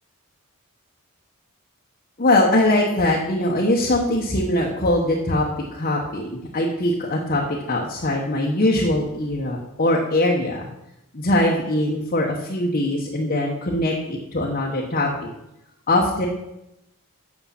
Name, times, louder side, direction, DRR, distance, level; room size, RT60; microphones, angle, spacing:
voice 1, 2.2-10.7 11.1-15.3 15.9-16.3, left 1 dB, 40° left, -2 dB, 1.1 m, -22 dB
8.4 x 6.7 x 5.8 m, 0.88 s
head